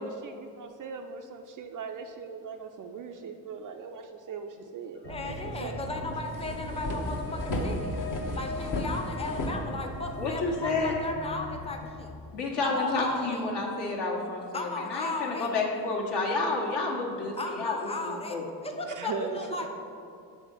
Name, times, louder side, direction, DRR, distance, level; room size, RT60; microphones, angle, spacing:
voice 1, 0.0-5.8 18.8-19.7, right 5 dB, 40° right, 5 dB, 0.5 m, -39 dB
sound 1, 5.0-11.9, left 1 dB, 85° left, 0.8 m, -39 dB
voice 2, 5.1-8.0 8.3-12.1 12.6-13.4 14.5-15.5 17.4-19.7, left 2 dB, 10° left, 3 dB, 0.8 m, -36 dB
sound 2, 6.1-10.3, left 1 dB, 40° left, 1.0 m, -34 dB
voice 3, 10.2-11.0 12.3-18.4, left 3 dB, 55° left, -1 dB, 1.4 m, -30 dB
7.0 x 3.6 x 5.6 m, 2.5 s
hypercardioid pair, 40°, 50 cm